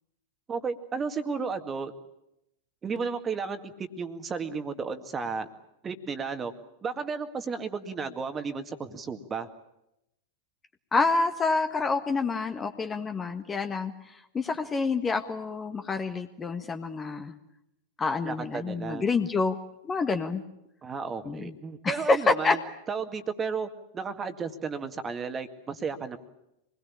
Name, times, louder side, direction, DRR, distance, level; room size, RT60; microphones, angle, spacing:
voice 1, 0.5-1.9 2.8-5.5 5.8-6.5 6.8-9.5 18.2-19.1 20.8-22.6 22.9-23.7 23.9-26.2, right 5 dB, 20° right, 8 dB, 2.0 m, -33 dB
voice 2, 10.9-13.9 14.3-17.3 18.0-19.5 19.8-20.4 21.2-21.5 21.8-22.6, left 4 dB, 20° left, 8 dB, 1.5 m, -27 dB
26.0 x 21.0 x 8.6 m, 0.84 s
figure-of-eight pair, 90°, 0 cm